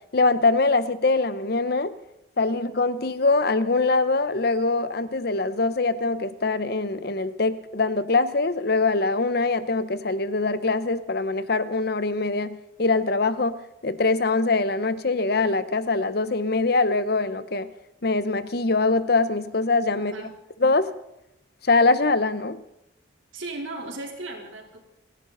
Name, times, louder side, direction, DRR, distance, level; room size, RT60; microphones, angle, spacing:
voice 1, 0.1-1.9 2.4-17.7 18.0-20.1 20.6-20.9 21.6-22.6, left 3 dB, 50° left, 13 dB, 0.8 m, -23 dB
voice 2, 23.3-24.8, right 2 dB, 80° right, 0 dB, 3.5 m, -36 dB
30.0 x 11.0 x 4.0 m, 0.86 s
head